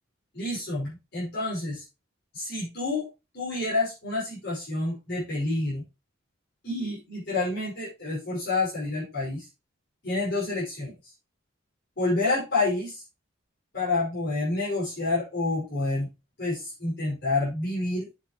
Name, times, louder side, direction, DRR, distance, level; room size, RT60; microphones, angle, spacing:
voice 1, 0.3-1.8 2.3-3.1 3.3-5.8 6.6-9.4 10.0-10.9 12.0-13.0 13.7-16.1 16.4-18.1, left 2 dB, 55° left, -8 dB, 5.3 m, -28 dB
8.4 x 7.9 x 3.0 m, 0.27 s
head